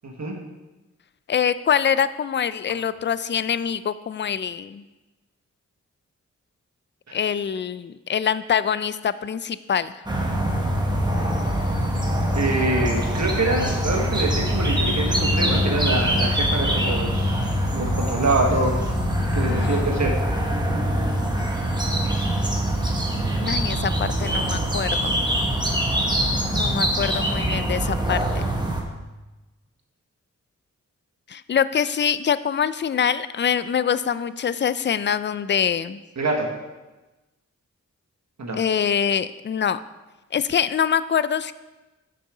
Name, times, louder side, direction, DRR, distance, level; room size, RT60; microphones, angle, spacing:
voice 1, 0.0-0.3 7.1-7.2 12.4-18.9 19.2-20.2 26.6-26.7 36.2-36.5 38.4-38.6, right 2 dB, 60° right, 0 dB, 1.4 m, -25 dB
voice 2, 1.3-4.8 7.1-10.0 19.5-20.0 23.4-25.2 26.5-28.5 31.3-36.0 38.6-39.8 40.3-41.5, left 8 dB, 40° left, 15 dB, 0.4 m, -24 dB
sound 1, 10.1-28.8, equal, 15° right, 1.4 m, -23 dB
6.8 x 6.4 x 4.8 m, 1.1 s
cardioid pair, 50°, 31 cm